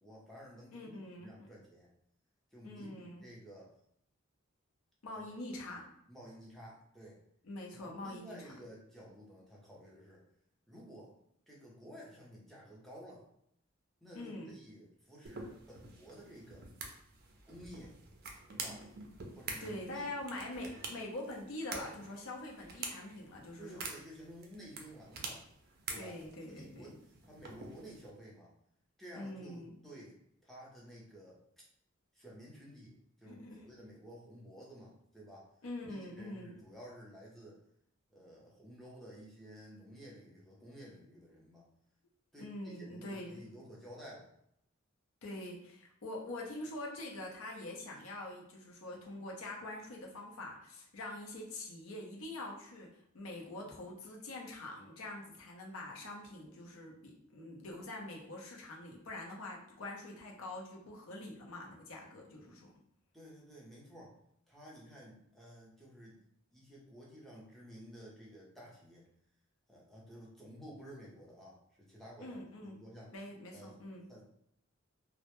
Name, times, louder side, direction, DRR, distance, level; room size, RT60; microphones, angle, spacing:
voice 1, 0.0-1.9 2.5-3.7 5.1-5.3 6.1-7.2 7.7-10.2 10.7-11.1 11.5-13.3 14.0-16.7 17.5-17.9 18.5-18.9 19.4-20.1 23.6-25.5 25.8-28.5 29.0-31.4 32.1-35.5 35.9-37.6 38.1-41.7 42.3-44.3 63.1-64.2 64.5-66.3 66.5-69.1 69.7-72.4 72.7-73.1 73.5-73.8 74.1-74.2, equal, ahead, -5 dB, 0.6 m, -53 dB
voice 2, 0.7-1.5 2.6-3.2 5.0-5.9 7.4-8.6 14.1-14.5 19.6-23.8 25.9-26.9 29.2-29.7 33.2-33.6 35.6-36.5 42.4-43.4 45.2-52.9 53.1-62.7 72.2-72.8 73.1-74.1, left 1 dB, 85° left, -1 dB, 0.6 m, -44 dB
sound 1, 15.3-28.1, right 4 dB, 50° right, 0.4 m, -47 dB
2.1 x 2.1 x 2.9 m, 0.72 s
head